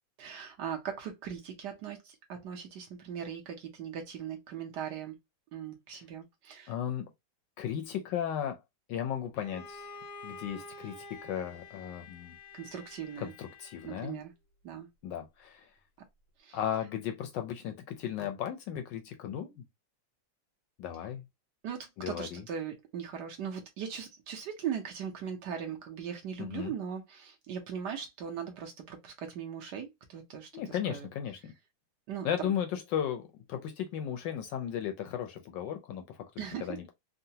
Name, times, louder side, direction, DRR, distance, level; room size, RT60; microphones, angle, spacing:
voice 1, 0.2-5.2 5.5-6.7 12.5-13.3 13.8-14.3 14.6-14.9 16.4-16.6 21.6-31.1 32.1-32.5 36.4-36.7, right 8 dB, 65° right, 1.1 m, -39 dB
voice 2, 6.7-7.1 7.6-8.6 8.9-10.0 10.2-12.4 13.2-14.2 15.0-15.7 16.5-19.5 20.8-21.2 22.0-22.4 26.4-26.7 30.5-31.5 32.2-36.9, left 9 dB, 75° left, 1.1 m, -35 dB
Bowed string instrument, 9.4-14.2, left 3 dB, 90° left, 1.6 m, -48 dB
3.8 x 2.1 x 2.7 m
omnidirectional pair, 2.2 m